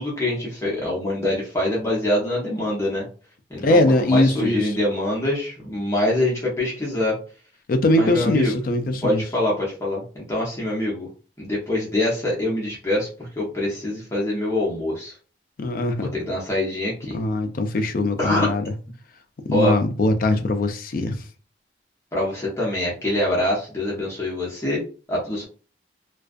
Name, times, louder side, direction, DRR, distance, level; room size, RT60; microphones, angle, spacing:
voice 1, 0.0-3.1 3.5-7.2 8.0-8.5 9.0-11.1 11.4-15.1 16.0-17.2 18.2-18.5 19.5-19.8 22.1-24.8 25.1-25.4, left 1 dB, 15° left, 0.7 m, -24 dB
voice 2, 3.6-4.7 7.7-9.2 15.6-16.1 17.1-18.6 19.5-21.2, left 2 dB, 50° left, 0.4 m, -21 dB
2.3 x 2.3 x 2.5 m
head